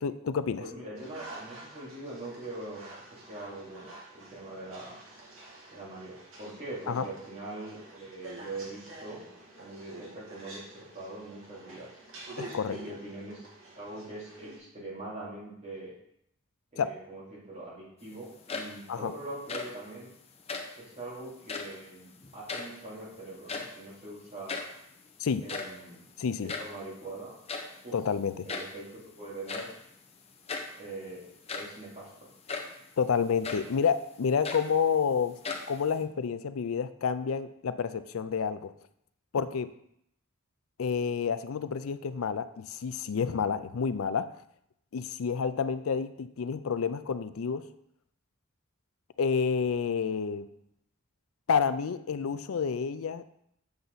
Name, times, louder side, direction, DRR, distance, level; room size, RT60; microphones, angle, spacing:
voice 1, 0.0-0.6 6.9-7.0 12.4-12.8 16.8-16.9 18.9-19.1 25.2-25.4 26.2-26.5 27.9-28.5 33.0-35.3 35.7-38.7 39.3-39.7 40.8-44.3 44.9-47.6 49.2-50.4 51.5-53.2, left 6 dB, 80° left, 13 dB, 0.4 m, -29 dB
voice 2, 0.6-2.8 3.1-5.0 5.7-9.3 9.6-11.9 12.7-13.5 13.8-15.9 16.7-20.1 20.8-24.6 25.4-26.1 26.4-27.3 27.8-28.0 28.4-29.7 30.7-32.3, right 2 dB, 30° right, -6 dB, 3.2 m, -42 dB
sound 1, 1.0-14.6, right 2 dB, 70° right, 2.4 m, -48 dB
sound 2, 18.3-19.0 19.3-19.9 20.4-20.8 21.4-21.9 22.2-23.0 23.3-23.9 24.2-24.3 24.5-24.8 25.3-26.8 27.5-27.8 28.5-28.9 29.5-29.8 30.5-30.8 31.3-31.8 32.5-32.8 33.4-33.8 34.2-35.1 35.4-36.0, left 4 dB, 30° left, 0.8 m, -38 dB
8.0 x 6.8 x 4.0 m, 0.74 s
head